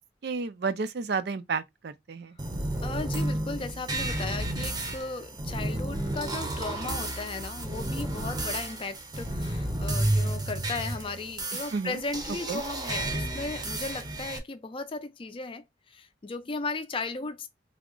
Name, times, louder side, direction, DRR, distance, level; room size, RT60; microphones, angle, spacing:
voice 1, 0.2-2.4 11.7-12.0 12.5-12.6, right 4 dB, 65° right, 0.4 m, -31 dB
sound 1, 2.4-14.4, right 1 dB, 25° right, 0.7 m, -32 dB
voice 2, 2.8-17.5, left 3 dB, 30° left, 0.4 m, -36 dB
3.5 x 2.0 x 3.7 m
head